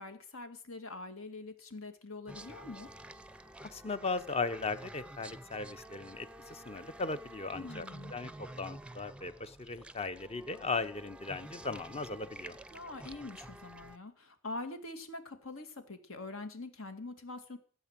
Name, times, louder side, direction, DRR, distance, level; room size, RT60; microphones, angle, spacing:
voice 1, 0.0-2.9 7.5-8.1 12.7-17.6, left 2 dB, 75° left, 8 dB, 2.2 m, -44 dB
sound 1, 2.3-14.0, right 1 dB, 5° right, 0.6 m, -50 dB
voice 2, 3.6-7.9 8.1-12.6, left 3 dB, 30° left, 13 dB, 0.8 m, -37 dB
15.5 x 8.3 x 7.5 m, 0.43 s
head